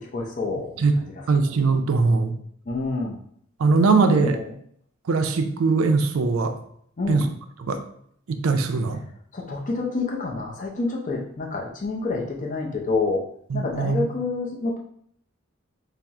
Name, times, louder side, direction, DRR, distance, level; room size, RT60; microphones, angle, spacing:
voice 1, 0.1-0.9 2.7-3.2 4.1-4.4 7.0-7.3 9.3-13.2 13.5-14.8, left 3 dB, 40° left, -1 dB, 0.5 m, -28 dB
voice 2, 1.3-2.3 3.6-4.4 5.1-6.6 7.1-7.3 7.6-7.8 8.3-9.0 13.5-14.1, right 4 dB, 85° right, 7 dB, 0.4 m, -21 dB
4.2 x 2.0 x 3.5 m, 0.66 s
head